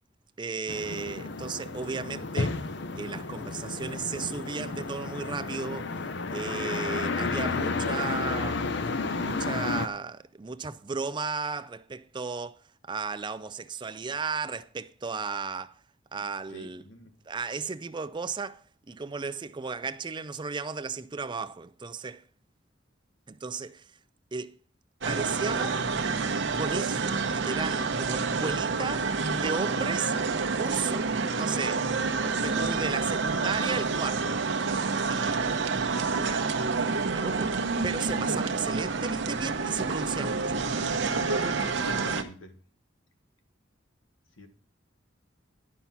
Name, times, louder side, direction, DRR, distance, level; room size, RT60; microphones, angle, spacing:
voice 1, 0.4-2.6 3.0-5.9 6.3-8.7 9.2-12.6 12.9-15.7 16.1-16.9 17.3-18.6 18.9-22.2 23.3-23.8 24.3-24.5 25.1-25.8 26.5-30.1 30.5-31.8 32.1-35.4 36.0-36.5 37.0-37.6 37.8-40.6, right 4 dB, 25° right, 0.4 m, -35 dB
sound 1, 0.7-9.9, left 3 dB, 60° left, 0.7 m, -32 dB
voice 2, 16.5-17.1 38.2-38.4 41.3-42.5 44.4-44.5, left 1 dB, 85° left, 1.5 m, -44 dB
sound 2, 25.0-42.2, right 4 dB, 65° right, 0.9 m, -28 dB
11.0 x 5.7 x 5.8 m
head